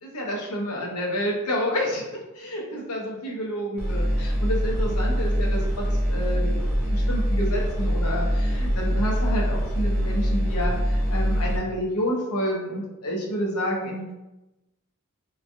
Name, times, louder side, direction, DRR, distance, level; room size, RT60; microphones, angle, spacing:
voice 1, 0.0-14.0, equal, 90° left, -1 dB, 0.7 m, -29 dB
sound 1, 3.8-11.6, equal, 5° right, 0.5 m, -24 dB
3.1 x 2.2 x 2.5 m, 0.98 s
head